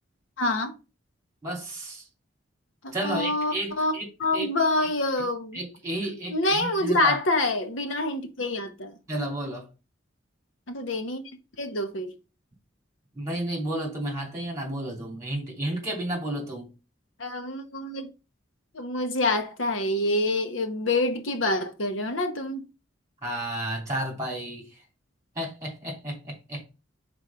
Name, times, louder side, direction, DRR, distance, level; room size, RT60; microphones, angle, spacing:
voice 1, 0.4-0.7 2.8-3.9 4.2-5.6 6.3-9.0 10.7-11.2 11.6-12.1 17.2-18.1 18.7-22.6, left 2 dB, 75° left, 1.0 m, -26 dB
voice 2, 1.4-2.1 2.9-4.0 4.3-4.5 5.5-7.2 9.1-9.7 13.1-16.7 23.2-24.8 25.3-26.6, right 1 dB, 15° right, 2.8 m, -32 dB
5.0 x 4.0 x 5.6 m
head